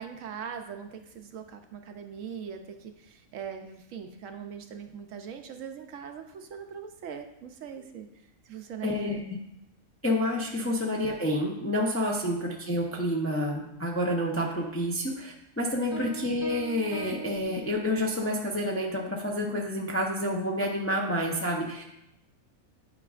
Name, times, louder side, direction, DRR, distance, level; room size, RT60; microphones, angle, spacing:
voice 1, 0.0-8.1 8.4-9.2 10.6-10.7 12.3-12.4 15.9-16.1, right 7 dB, 70° right, 6 dB, 0.9 m, -41 dB
voice 2, 8.8-9.2 10.0-21.8, left 1 dB, 15° left, -1 dB, 0.4 m, -29 dB
Piano, 15.9-18.3, left 1 dB, 85° left, 1.8 m, -41 dB
9.7 x 5.0 x 2.4 m, 0.84 s
omnidirectional pair, 1.5 m